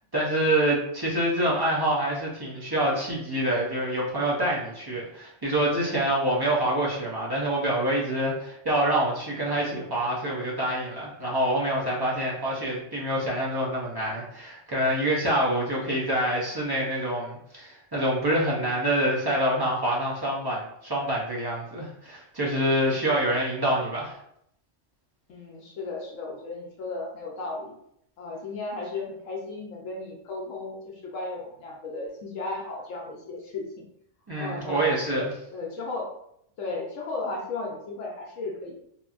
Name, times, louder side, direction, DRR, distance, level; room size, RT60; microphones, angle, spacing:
voice 1, 0.1-24.1 34.3-35.3, right 1 dB, 30° right, -5 dB, 0.4 m, -26 dB
voice 2, 25.3-27.8 28.2-33.9 34.3-34.9 35.5-36.1 36.6-38.8, left 3 dB, 80° left, -2 dB, 1.0 m, -35 dB
2.9 x 2.6 x 2.4 m, 0.74 s
omnidirectional pair, 1.3 m